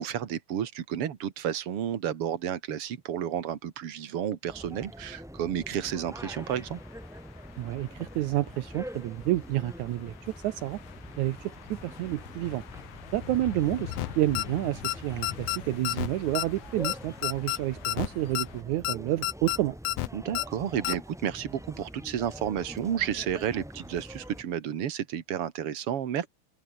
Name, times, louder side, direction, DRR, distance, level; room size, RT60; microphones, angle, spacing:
voice 1, 0.0-6.8 20.1-26.3, right 9 dB, 45° right, 2.1 m, -31 dB
sound 1, 4.5-24.4, equal, ahead, 1.7 m, -45 dB
sound 2, 6.2-18.6, left 10 dB, 60° left, 2.7 m, -45 dB
voice 2, 7.6-10.8 11.2-12.6 13.1-19.8, right 15 dB, 75° right, 1.7 m, -29 dB
sound 3, 13.9-14.1 14.3-14.4 14.8-15.0 15.2-15.6 15.8-16.1 16.3-16.5 16.8-17.0 17.2-17.6 17.8-18.1 18.3-18.5 18.8-19.0 19.2-19.6 19.8-20.1 20.3-20.5 20.8-21.0, left 17 dB, 75° left, 1.9 m, -29 dB
omnidirectional pair, 4.5 m